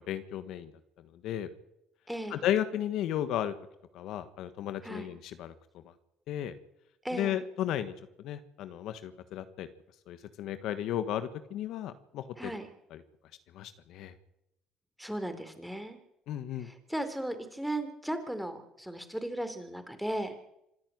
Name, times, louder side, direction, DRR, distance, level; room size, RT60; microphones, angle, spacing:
voice 1, 0.1-0.7 1.2-1.5 2.3-3.5 3.9-5.5 6.3-6.5 7.1-7.9 8.2-9.7 10.1-12.5 12.9-13.0 13.5-14.1 16.3-16.7, left 11 dB, 70° left, 11 dB, 1.4 m, -34 dB
voice 2, 2.1-2.4 4.8-5.1 7.0-7.4 12.4-12.7 15.0-16.0 16.5-20.3, right 1 dB, 5° right, 8 dB, 4.0 m, -36 dB
26.5 x 10.5 x 9.4 m, 0.83 s
hypercardioid pair, 65°, 0 cm